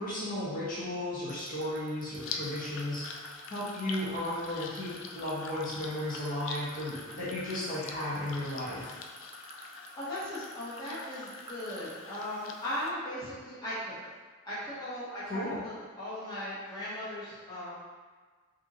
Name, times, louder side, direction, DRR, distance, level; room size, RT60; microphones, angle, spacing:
voice 1, 0.0-3.0 3.5-8.9 15.3-15.6, left 1 dB, 40° left, -9 dB, 1.3 m, -34 dB
sound 1, 1.3-11.9, right 5 dB, 25° right, 0.6 m, -48 dB
sound 2, 2.2-12.9, left 4 dB, 65° left, 0.4 m, -44 dB
voice 2, 10.0-14.0 14.4-17.8, left 1 dB, 20° left, -12 dB, 1.2 m, -38 dB
5.2 x 3.0 x 3.0 m, 1.4 s
head